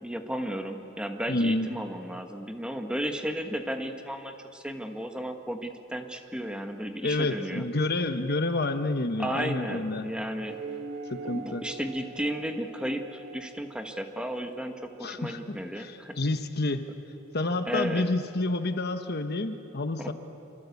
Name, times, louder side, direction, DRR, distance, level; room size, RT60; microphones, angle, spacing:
voice 1, 0.0-7.7 9.2-10.6 11.3-16.2 17.7-18.1 20.0-20.1, equal, 5° right, 5 dB, 1.5 m, -34 dB
voice 2, 1.3-1.7 7.0-10.1 11.1-11.6 15.0-16.9 17.3-20.1, left 2 dB, 50° left, 8 dB, 1.2 m, -29 dB
sound 1, 10.5-15.4, right 4 dB, 55° right, 2.0 m, -43 dB
27.5 x 25.0 x 8.4 m, 2.9 s
head